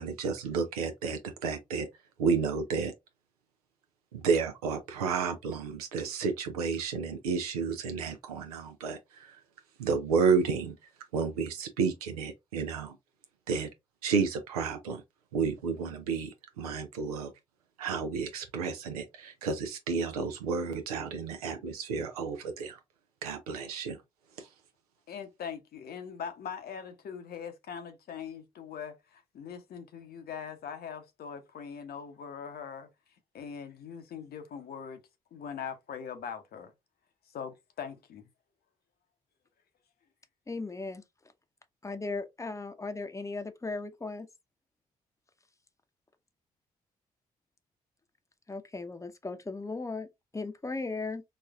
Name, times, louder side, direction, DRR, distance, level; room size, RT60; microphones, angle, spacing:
voice 1, 0.0-1.9 2.2-2.9 4.1-9.4 9.8-10.7 11.1-13.0 13.5-13.7 14.0-15.0 15.3-17.3 17.8-22.8 23.2-24.0 24.4-24.5, right 5 dB, 85° right, 0.6 m, -31 dB
voice 2, 25.1-32.9 33.3-35.0 35.3-36.7 37.3-38.3, left 7 dB, 55° left, 0.8 m, -41 dB
voice 3, 40.5-41.0 41.8-44.3 48.5-50.1 50.3-51.2, left 3 dB, 15° left, 0.7 m, -37 dB
4.1 x 2.4 x 2.3 m
hypercardioid pair, 45°, 19 cm